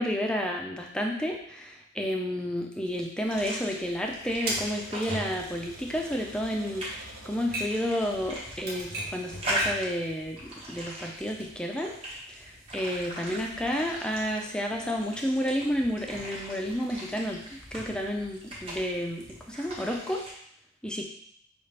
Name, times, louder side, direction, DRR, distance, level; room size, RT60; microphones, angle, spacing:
voice 1, 0.0-11.9 12.3-20.2 20.8-21.0, equal, 5° left, 1 dB, 0.4 m, -31 dB
sound 1, 3.2-20.3, equal, 30° right, 0.9 m, -40 dB
Typewriter, 4.5-9.9, right 1 dB, 50° right, 1.0 m, -38 dB
5.4 x 2.4 x 3.3 m, 0.69 s
head